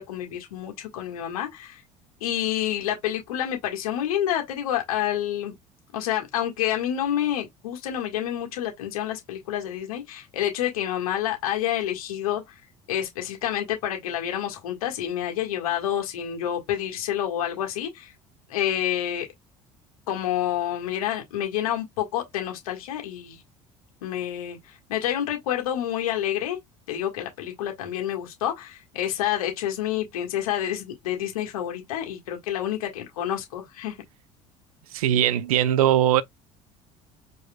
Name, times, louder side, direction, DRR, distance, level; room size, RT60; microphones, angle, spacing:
voice 1, 0.0-1.8 2.2-5.5 5.9-12.4 12.9-18.1 18.5-19.3 20.1-23.4 24.0-26.6 26.9-33.9, left 11 dB, 85° left, 1.7 m, -28 dB
voice 2, 34.9-36.2, right 11 dB, 85° right, 0.5 m, -20 dB
5.0 x 4.0 x 2.3 m
hypercardioid pair, 70°, 18 cm